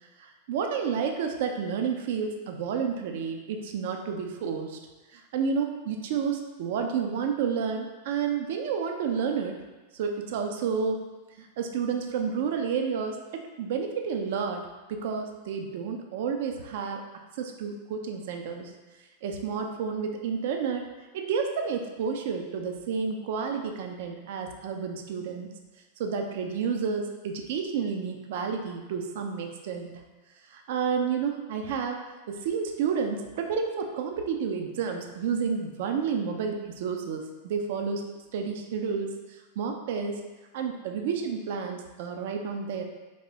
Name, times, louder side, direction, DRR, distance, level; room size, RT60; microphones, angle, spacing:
voice 1, 0.2-4.8 5.1-9.6 9.9-11.0 11.4-17.0 17.4-18.7 19.2-20.9 21.1-25.5 26.0-29.9 30.5-38.0 38.3-40.2 40.5-42.8, right 6 dB, 55° right, 4 dB, 0.4 m, -30 dB
3.1 x 2.0 x 3.6 m, 1.2 s
figure-of-eight pair, 90°, 0 cm